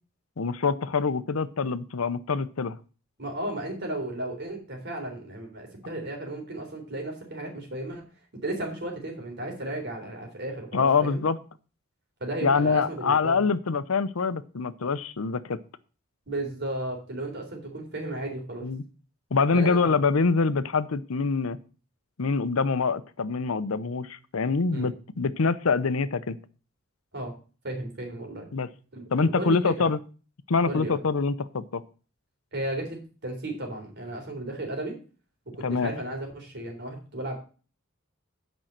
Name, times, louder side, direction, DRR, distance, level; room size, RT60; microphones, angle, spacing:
voice 1, 0.4-2.8 10.7-11.4 12.4-15.6 18.6-18.8 19.3-21.6 22.2-26.4 28.5-28.7 29.1-30.0 30.5-31.8 35.6-35.9, left 4 dB, 90° left, 14 dB, 0.7 m, -25 dB
voice 2, 3.2-8.0 8.4-11.2 12.2-13.4 16.3-18.7 19.5-20.0 24.7-24.9 27.1-27.3 27.6-28.5 28.9-29.9 30.7-31.0 32.5-34.9 35.5-37.4, right 1 dB, 55° right, 2 dB, 3.7 m, -34 dB
9.1 x 5.5 x 7.4 m, 0.38 s
head